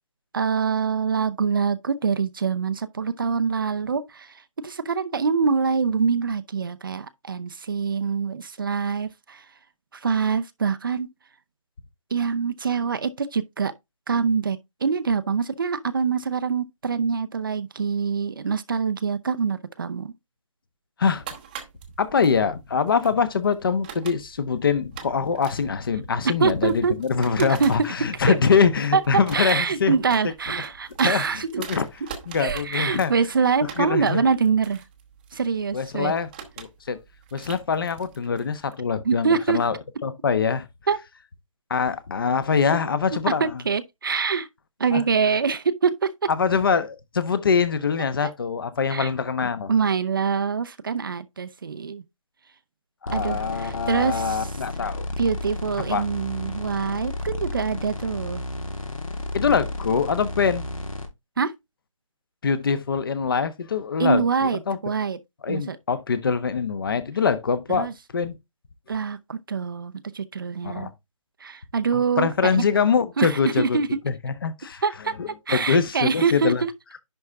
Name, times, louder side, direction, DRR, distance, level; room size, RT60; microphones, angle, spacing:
voice 1, 0.3-9.5 9.9-11.1 12.1-13.7 14.1-20.1 26.4-26.9 27.4-28.4 28.9-29.0 29.3-31.6 32.4-34.8 35.3-36.1 39.0-39.6 40.9-41.0 43.4-44.5 44.8-46.3 48.2-48.3 48.9-49.1 49.7-52.0 53.1-54.5 55.2-58.4 61.4-61.5 64.0-65.2 65.5-65.8 67.7-67.9 68.9-70.9 71.4-72.6 73.2-73.9 74.8-75.1 75.5-76.7, right 5 dB, 40° right, 0.6 m, -25 dB
sound 1, 21.1-38.7, right 8 dB, 15° right, 0.9 m, -44 dB
voice 2, 22.0-30.0 31.0-31.2 31.6-31.9 32.3-33.1 33.8-34.2 35.7-36.3 36.6-37.0 37.3-39.7 40.0-40.7 41.7-43.6 44.9-45.0 46.3-49.7 53.0-55.1 55.9-56.0 59.3-60.7 62.4-64.8 65.4-68.4 70.6-70.9 71.9-73.8 74.0-74.8 75.2-76.6, left 6 dB, 40° left, 1.2 m, -24 dB
sound 2, 53.1-61.1, left 1 dB, 90° left, 3.1 m, -32 dB
10.5 x 4.3 x 3.5 m
figure-of-eight pair, 165°, 17 cm